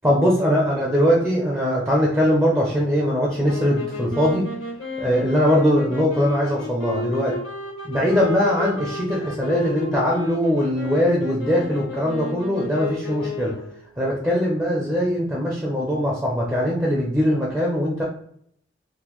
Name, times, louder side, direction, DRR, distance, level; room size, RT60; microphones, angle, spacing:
voice 1, 0.0-4.5 5.0-7.4 7.8-13.5 14.0-18.0, equal, 10° right, -4 dB, 0.5 m, -21 dB
sound 1, 3.4-13.8, left 3 dB, 85° left, 0.9 m, -32 dB
3.7 x 2.1 x 3.0 m, 0.68 s
head